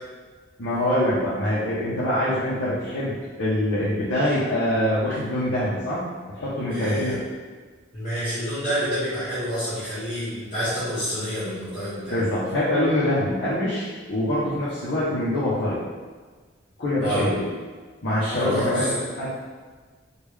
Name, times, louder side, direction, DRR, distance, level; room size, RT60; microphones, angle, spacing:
voice 1, 0.6-6.0 6.3-7.2 12.1-15.8 16.8-17.5 18.0-19.3, left 1 dB, 60° left, -10 dB, 0.6 m, -24 dB
voice 2, 6.7-7.2 7.9-12.2 17.0-17.3 18.3-18.9, equal, 35° left, -15 dB, 1.2 m, -28 dB
3.6 x 2.2 x 3.2 m, 1.4 s
head